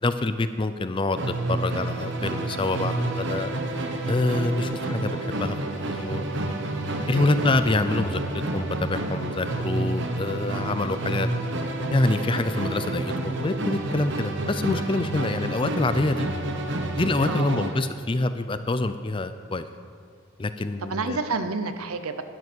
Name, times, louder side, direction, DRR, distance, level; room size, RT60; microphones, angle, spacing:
voice 1, 0.0-3.5 4.1-5.6 5.9-6.3 7.1-8.2 8.5-11.3 11.9-16.3 17.0-19.7 20.4-21.2, left 2 dB, 25° left, 10 dB, 0.4 m, -26 dB
Musical instrument, 1.1-17.8, right 2 dB, 50° right, 1.0 m, -29 dB
voice 2, 7.1-7.5 17.3-17.7 20.9-22.2, right 3 dB, 80° right, 10 dB, 0.8 m, -30 dB
12.0 x 10.5 x 6.2 m, 2.1 s
head